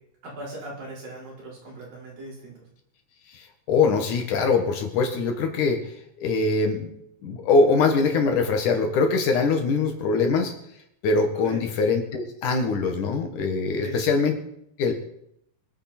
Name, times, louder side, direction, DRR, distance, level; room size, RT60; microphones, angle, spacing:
voice 1, 0.2-2.7 11.4-11.6 13.8-14.2, right 1 dB, 85° right, -5 dB, 6.7 m, -39 dB
voice 2, 3.3-5.8 6.2-6.9 7.2-10.5 11.0-14.3 14.8-14.9, left 4 dB, 65° left, 5 dB, 3.1 m, -22 dB
24.0 x 9.2 x 4.4 m, 0.74 s
omnidirectional pair, 3.9 m